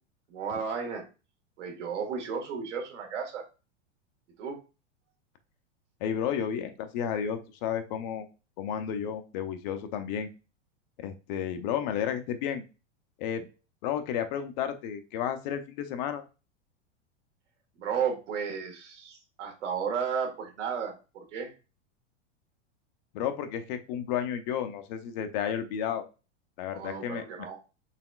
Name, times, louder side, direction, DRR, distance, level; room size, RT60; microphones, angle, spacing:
voice 1, 0.3-1.0 1.6-3.4 4.4-4.6 17.8-21.5 26.7-27.6, right 6 dB, 80° right, 3 dB, 1.6 m, -33 dB
voice 2, 6.0-8.3 8.6-10.3 11.0-12.6 13.2-13.4 13.8-16.2 23.1-26.1 26.6-27.5, left 9 dB, 40° left, 8 dB, 0.5 m, -32 dB
4.1 x 3.8 x 2.3 m, 0.31 s
supercardioid pair, 150°, 35 cm